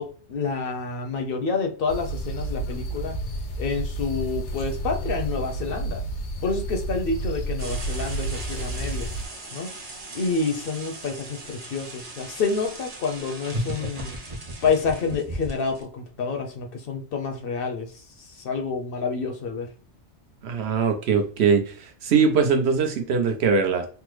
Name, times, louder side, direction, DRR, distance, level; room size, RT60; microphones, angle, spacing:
voice 1, 0.0-3.2 3.6-6.0 6.4-9.1 9.5-9.7 10.1-14.1 14.6-17.9 18.3-19.7, left 4 dB, 60° left, 4 dB, 0.7 m, -28 dB
sound 1, 1.9-9.2, right 2 dB, 90° left, 1.0 m, -31 dB
sound 2, 7.6-15.8, right 2 dB, 40° right, 0.8 m, -40 dB
sound 3, 13.5-15.7, right 1 dB, 55° right, 0.4 m, -32 dB
voice 2, 20.4-21.8 22.0-23.9, right 5 dB, 75° right, 5 dB, 0.9 m, -21 dB
3.4 x 2.0 x 3.1 m, 0.42 s
omnidirectional pair, 1.2 m